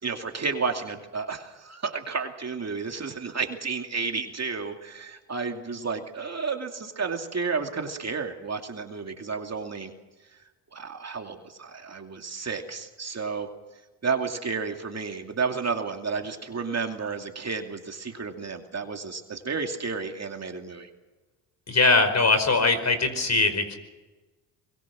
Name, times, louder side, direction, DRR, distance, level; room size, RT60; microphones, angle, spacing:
voice 1, 0.0-9.9 10.7-13.5 14.0-20.9, right 5 dB, 35° right, 4 dB, 2.6 m, -31 dB
voice 2, 21.7-23.8, left 3 dB, 35° left, 9 dB, 5.1 m, -21 dB
24.0 x 22.5 x 6.3 m, 1.2 s
supercardioid pair, 80°, 47 cm